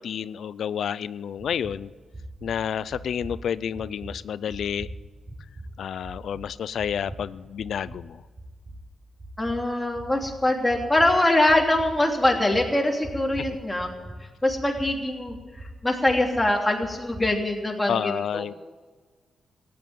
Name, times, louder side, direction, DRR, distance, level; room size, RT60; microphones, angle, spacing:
voice 1, 0.0-1.9 2.4-4.9 5.8-8.2 17.9-18.5, left 8 dB, 75° left, 18 dB, 0.4 m, -30 dB
sound 1, 1.4-1.8 2.1-2.5 2.9-3.4 3.7-4.1 4.5-4.9 5.3-5.6 6.0-6.4 6.8-7.2 7.6-8.0 8.3-8.8 9.2-9.6 9.9-10.3 10.7-11.1 11.5-11.9 12.2-12.6 13.0-13.5 13.8-14.2 14.5-14.9 15.3-15.7 16.1-16.4 16.8-17.2, right 2 dB, 45° right, 5.7 m, -40 dB
voice 2, 9.4-13.9 14.4-15.4 15.8-18.5, left 1 dB, 10° left, 1 dB, 3.0 m, -23 dB
15.5 x 9.7 x 9.3 m, 1.4 s
cardioid pair, 75°, 0 cm